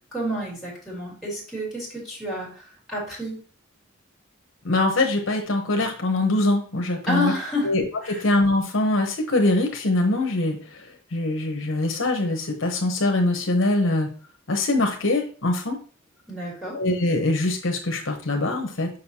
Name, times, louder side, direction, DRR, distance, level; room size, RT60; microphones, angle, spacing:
voice 1, 0.1-3.4 7.1-7.7 8.0-8.2 16.3-16.8, left 1 dB, ahead, -6 dB, 3.0 m, -29 dB
voice 2, 4.6-7.3 7.6-14.1 14.5-15.8 16.7-18.9, left 2 dB, 70° left, 3 dB, 1.0 m, -23 dB
6.5 x 5.3 x 2.8 m, 0.41 s
head